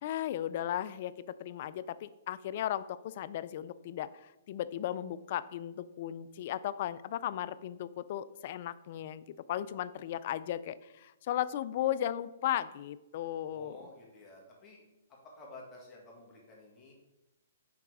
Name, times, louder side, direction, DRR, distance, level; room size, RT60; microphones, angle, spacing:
voice 1, 0.0-13.8, left 11 dB, 45° left, 16 dB, 0.3 m, -36 dB
voice 2, 13.5-14.8 15.4-16.9, left 2 dB, 20° left, -2 dB, 1.7 m, -52 dB
5.9 x 3.9 x 4.8 m, 0.94 s
hypercardioid pair, 150°, 0 cm